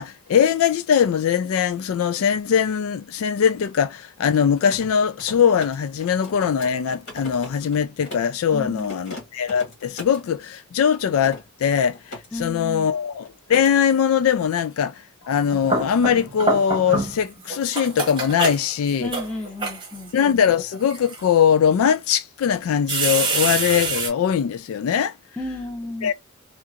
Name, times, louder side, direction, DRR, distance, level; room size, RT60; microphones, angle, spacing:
voice 1, 0.0-19.1 20.1-25.1 26.0-26.1, left 8 dB, 75° left, 0.3 m, -21 dB
Mechanisms, 4.4-8.4 8.8-10.3 10.9-12.3 12.6-12.9 13.2-13.8, left 1 dB, 55° left, 1.7 m, -40 dB
voice 2, 8.5-9.0 12.3-12.9 19.0-20.1 25.4-26.1, left 2 dB, 5° left, 0.8 m, -32 dB
sound 1, 15.3-17.2 17.5-20.1 20.7-21.2 21.9-22.0 22.9-24.1, right 3 dB, 20° right, 1.1 m, -26 dB
2.8 x 2.4 x 2.4 m
head